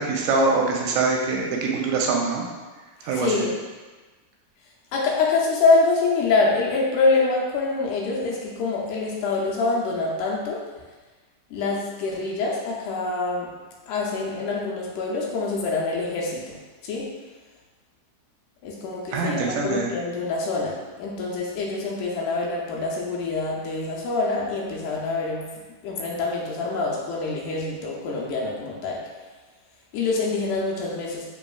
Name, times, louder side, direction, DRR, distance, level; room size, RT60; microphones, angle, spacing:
voice 1, 0.0-2.4 3.0-3.4 19.1-19.9, right 3 dB, 85° right, 0 dB, 2.2 m, -23 dB
voice 2, 3.0-3.6 4.9-10.6 11.5-13.5 13.9-16.6 16.8-17.1 18.6-25.5 25.8-29.0 29.9-31.3, left 3 dB, 80° left, -3 dB, 2.0 m, -25 dB
5.2 x 3.0 x 2.3 m, 1.3 s
omnidirectional pair, 3.7 m